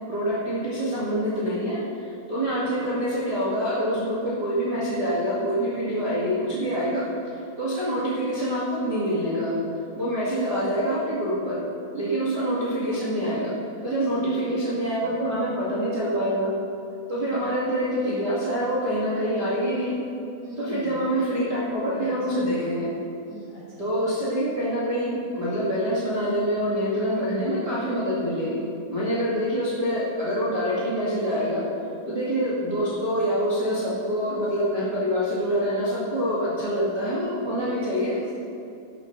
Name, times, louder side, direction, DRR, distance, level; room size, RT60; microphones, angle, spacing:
voice 1, 0.1-1.8 2.3-9.6 9.9-11.6 11.9-13.5 13.8-16.5 17.1-20.0 20.6-22.9 23.8-31.6 32.1-38.1, equal, 65° right, -9 dB, 1.0 m, -26 dB
voice 2, 13.8-14.4 14.8-15.6 17.2-17.6 20.4-21.1 21.7-22.6 23.2-23.9 37.4-38.3, left 2 dB, 70° left, -6 dB, 1.6 m, -41 dB
15.0 x 12.5 x 3.3 m, 2.5 s
omnidirectional pair, 5.9 m